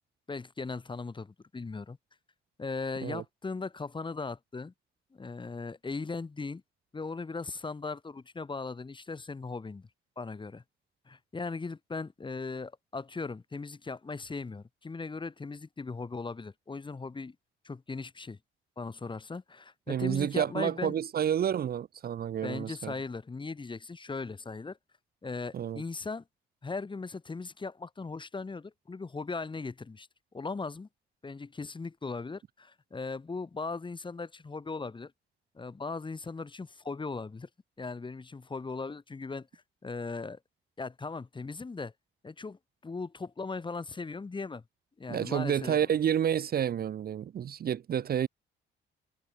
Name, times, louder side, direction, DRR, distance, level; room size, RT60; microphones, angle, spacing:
voice 1, 0.3-2.0 2.6-4.7 5.1-6.6 6.9-9.9 10.2-10.6 11.1-17.4 17.6-18.4 18.8-21.0 22.4-24.8 25.2-26.2 26.6-30.1 30.3-30.9 31.2-35.1 35.6-37.5 37.8-40.4 40.8-41.9 42.2-44.6 45.0-45.8, left 4 dB, 25° left, 1.7 m, -38 dB
voice 2, 19.9-22.9 25.5-25.8 45.1-48.3, right 9 dB, 50° right, 0.8 m, -29 dB
cardioid pair, 90°, 20 cm